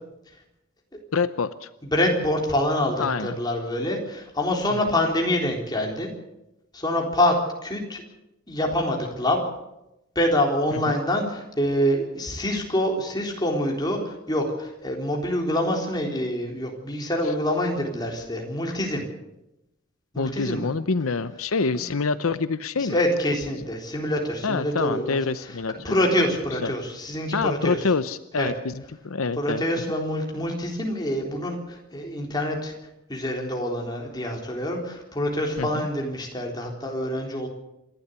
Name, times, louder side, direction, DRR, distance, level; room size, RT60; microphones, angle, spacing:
voice 1, 1.1-1.7 3.0-3.4 4.7-4.8 10.7-11.0 17.2-17.3 20.2-23.0 24.4-26.0 26.6-26.7 27.3-29.6 35.6-35.9, left 4 dB, 80° left, 13 dB, 0.8 m, -26 dB
voice 2, 1.9-6.1 6.7-7.4 7.6-8.0 8.5-9.4 10.2-19.0 20.1-20.7 22.9-25.2 25.8-27.8 28.4-28.5 29.4-32.7 33.1-37.5, left 1 dB, 20° left, 0 dB, 3.9 m, -26 dB
27.5 x 12.0 x 8.2 m, 0.90 s
head